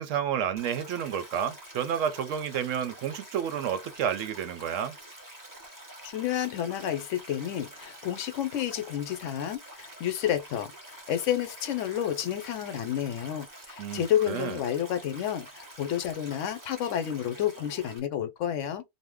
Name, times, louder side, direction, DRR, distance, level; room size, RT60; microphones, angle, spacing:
voice 1, 0.0-5.0 13.8-14.6, right 8 dB, 75° right, 0.9 m, -30 dB
Stream, 0.6-18.0, right 1 dB, 20° right, 0.6 m, -47 dB
voice 2, 6.0-18.8, left 10 dB, 75° left, 0.9 m, -30 dB
2.6 x 2.1 x 3.4 m
omnidirectional pair, 1.3 m